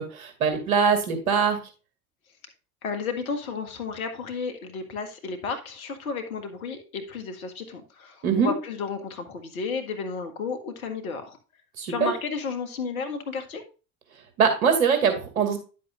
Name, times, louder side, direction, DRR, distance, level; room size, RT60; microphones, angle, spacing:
voice 1, 0.0-1.6 8.2-8.5 11.8-12.1 14.4-15.6, right 6 dB, 75° right, 6 dB, 2.5 m, -22 dB
voice 2, 2.8-11.4 11.9-13.6, left 5 dB, 75° left, 7 dB, 1.7 m, -32 dB
10.5 x 7.6 x 2.5 m, 0.33 s
figure-of-eight pair, 70°, 43 cm